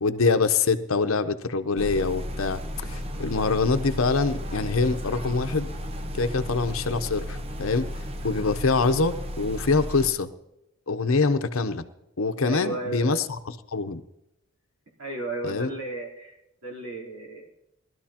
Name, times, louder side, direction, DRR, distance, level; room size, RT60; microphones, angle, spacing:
voice 1, 0.0-5.7 6.1-10.3 10.9-11.9 12.2-14.0 15.4-15.7, left 4 dB, 70° left, 9 dB, 0.8 m, -25 dB
sound 1, 1.8-10.1, equal, 30° right, 0.7 m, -34 dB
voice 2, 12.4-13.2 15.0-16.4 16.6-17.5, right 2 dB, 70° right, -1 dB, 3.5 m, -34 dB
20.5 x 12.5 x 2.9 m, 0.86 s
head